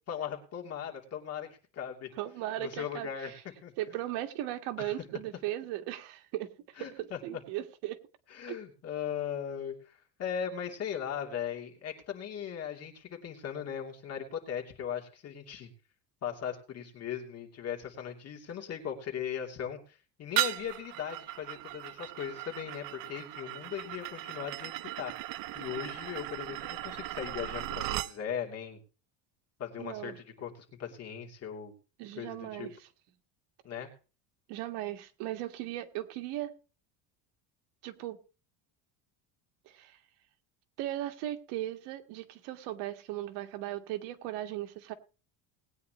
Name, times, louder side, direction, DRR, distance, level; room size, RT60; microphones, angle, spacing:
voice 1, 0.1-2.1 2.6-3.3 3.6-3.7 4.8-4.9 6.8-7.2 8.3-15.7 16.2-25.1 25.5-28.8 29.6-31.7 32.2-32.7 33.6-33.9, left 8 dB, 35° left, 3.0 m, -38 dB
voice 2, 2.2-3.3 3.8-6.5 6.8-8.0 8.5-8.6 29.8-30.2 32.0-32.8 34.5-36.5 37.8-38.2 39.7-40.0 40.8-44.9, right 14 dB, 70° right, 1.8 m, -37 dB
sound 1, 20.4-28.1, right 16 dB, 50° right, 0.6 m, -37 dB
20.0 x 9.3 x 3.1 m
cardioid pair, 165°, 42 cm